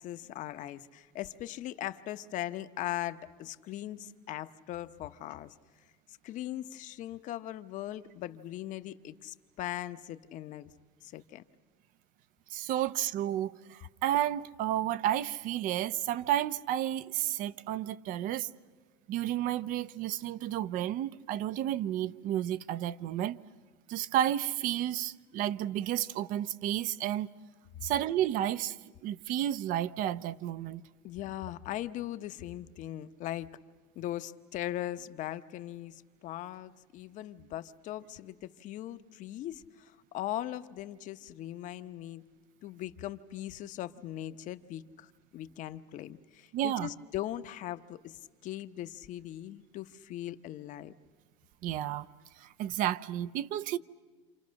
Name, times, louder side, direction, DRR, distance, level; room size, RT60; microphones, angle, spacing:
voice 1, 0.0-5.5 6.1-10.7 11.0-11.4 31.0-33.5 33.9-42.2 42.6-50.9, left 13 dB, 50° left, 0.9 m, -39 dB
voice 2, 12.5-18.5 19.1-23.4 23.9-27.3 27.8-28.8 29.0-30.8 46.5-46.9 51.6-52.1 52.4-53.8, right 12 dB, 55° right, 0.7 m, -31 dB
28.0 x 27.5 x 6.4 m
supercardioid pair, 125°, 16 cm